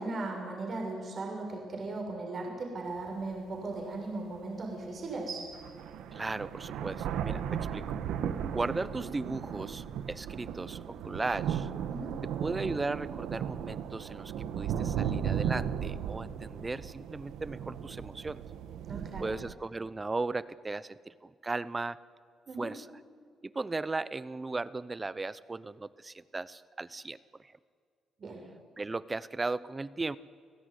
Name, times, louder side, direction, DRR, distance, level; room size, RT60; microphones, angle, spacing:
voice 1, 0.0-5.4 11.9-12.2 18.9-19.3 22.5-22.7 28.2-28.4, right 2 dB, 45° right, 1 dB, 6.8 m, -37 dB
sound 1, 3.0-3.1 3.7-3.8 5.1-5.2 5.5-19.5, right 8 dB, 85° right, 1.6 m, -36 dB
voice 2, 6.1-7.8 8.5-11.7 12.4-18.4 19.2-22.0 22.6-22.9 23.4-27.2 27.4-27.5 28.8-30.2, right 3 dB, 20° right, 17 dB, 0.9 m, -36 dB
29.5 x 17.0 x 9.9 m, 2.1 s
cardioid pair, 90°, 0 cm